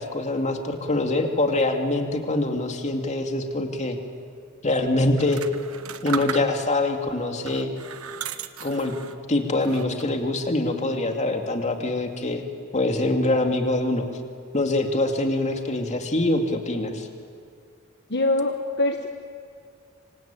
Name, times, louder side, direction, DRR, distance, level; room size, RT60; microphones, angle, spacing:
voice 1, 0.0-4.0 4.6-5.4 6.0-7.7 8.6-8.9 9.3-12.4 12.7-14.1 14.5-17.1, left 2 dB, 35° left, 4 dB, 2.6 m, -24 dB
sound 1, 5.1-6.8 7.4-9.2 9.6-10.2, right 7 dB, 85° right, 1.2 m, -36 dB
voice 2, 18.1-19.1, left 2 dB, 55° left, 5 dB, 1.2 m, -23 dB
26.5 x 24.5 x 9.1 m, 2.2 s
head